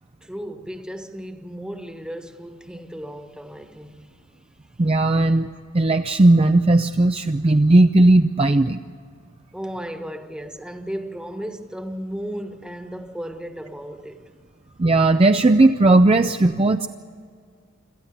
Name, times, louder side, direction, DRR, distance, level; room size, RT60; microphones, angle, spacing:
voice 1, 0.2-4.4 9.5-14.3, equal, 5° right, 1.4 m, -35 dB
voice 2, 4.8-8.8 14.8-16.9, right 2 dB, 30° right, 0.5 m, -16 dB
27.0 x 14.0 x 8.1 m
head